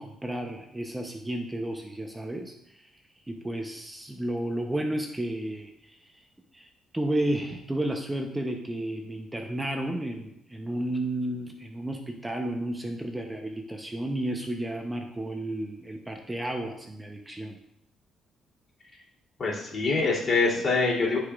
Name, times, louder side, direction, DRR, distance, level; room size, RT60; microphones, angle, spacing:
voice 1, 0.0-2.9 3.3-6.1 6.5-6.7 6.9-17.6, right 1 dB, 10° right, 3 dB, 0.7 m, -32 dB
voice 2, 19.4-21.2, left 3 dB, 45° left, -4 dB, 2.9 m, -24 dB
13.5 x 4.9 x 2.4 m, 0.78 s
cardioid pair, 90°, 0 cm